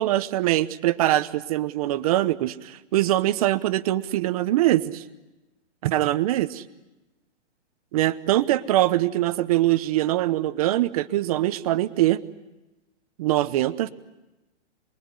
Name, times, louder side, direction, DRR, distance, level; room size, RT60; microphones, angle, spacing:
voice 1, 0.0-5.0 5.8-6.6 7.9-12.2 13.2-13.9, right 15 dB, 30° right, 14 dB, 1.0 m, -23 dB
27.5 x 22.0 x 9.7 m, 1.0 s
hypercardioid pair, 160°, 35 cm